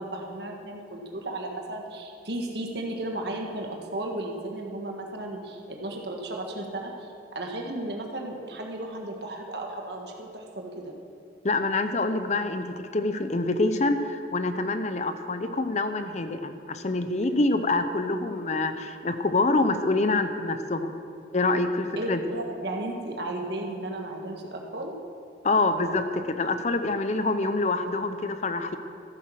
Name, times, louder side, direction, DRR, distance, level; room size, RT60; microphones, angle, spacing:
voice 1, 0.0-10.9 21.9-24.9, right 1 dB, 65° right, 1 dB, 1.7 m, -34 dB
voice 2, 11.4-21.0 21.3-22.2 25.4-28.8, left 2 dB, 40° left, 9 dB, 0.6 m, -26 dB
14.0 x 8.5 x 6.4 m, 2.6 s
head